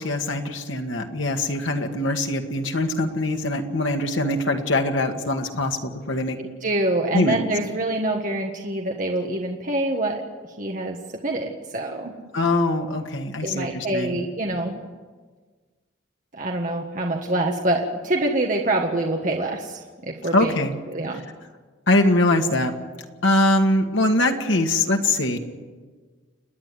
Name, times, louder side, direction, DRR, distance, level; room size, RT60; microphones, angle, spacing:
voice 1, 0.0-6.4 7.1-7.4 12.3-14.2 20.3-20.7 21.9-22.7 23.2-25.4, left 2 dB, 85° left, 4 dB, 2.1 m, -22 dB
voice 2, 6.4-10.2 10.6-11.0 11.2-12.1 13.4-14.8 16.3-20.5 20.9-21.2, right 1 dB, 40° right, 1 dB, 1.6 m, -25 dB
29.5 x 10.0 x 9.4 m, 1.4 s
head